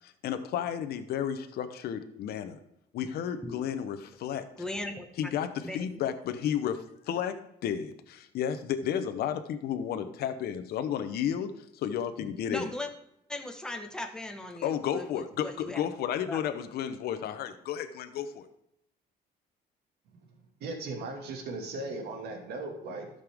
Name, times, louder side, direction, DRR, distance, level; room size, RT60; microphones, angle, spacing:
voice 1, 0.0-2.6 2.9-4.5 5.2-12.7 14.6-18.5, left 9 dB, 70° left, 9 dB, 0.9 m, -32 dB
voice 2, 4.6-5.3 5.6-6.0 12.2-12.9 13.3-15.9 16.3-16.4, left 2 dB, 5° left, 2 dB, 1.4 m, -38 dB
voice 3, 20.6-23.1, right 2 dB, 75° right, 3 dB, 2.2 m, -37 dB
12.5 x 6.7 x 3.6 m, 0.81 s
cardioid pair, 110°, 17 cm